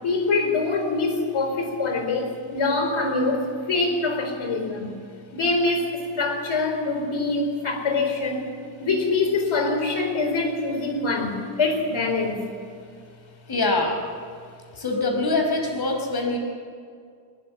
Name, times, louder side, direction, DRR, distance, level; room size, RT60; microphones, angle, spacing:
voice 1, 0.0-4.9 5.3-8.5 8.8-12.4, left 3 dB, 90° left, 5 dB, 4.3 m, -24 dB
voice 2, 13.5-13.9 14.8-16.4, left 2 dB, 55° left, 3 dB, 5.1 m, -24 dB
21.5 x 21.0 x 9.0 m, 2.2 s
wide cardioid pair, 175°, 47 cm